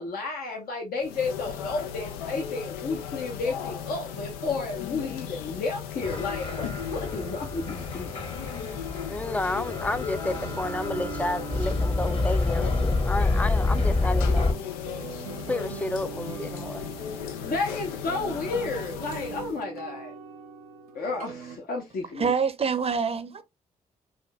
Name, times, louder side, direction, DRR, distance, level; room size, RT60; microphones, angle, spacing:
voice 1, 0.0-8.1 17.4-20.1 20.9-22.3, left 3 dB, 55° left, 0.8 m, -32 dB
sound 1, 1.0-19.6, left 8 dB, 80° left, 0.4 m, -36 dB
sound 2, 6.0-14.5, left 3 dB, 30° left, 1.1 m, -28 dB
voice 2, 9.1-14.7 15.5-16.9, left 2 dB, 10° left, 0.4 m, -31 dB
sound 3, 10.2-21.6, right 8 dB, 85° right, 0.5 m, -42 dB
voice 3, 22.2-23.4, right 6 dB, 35° right, 0.7 m, -26 dB
5.0 x 2.6 x 2.2 m
hypercardioid pair, 40°, 18 cm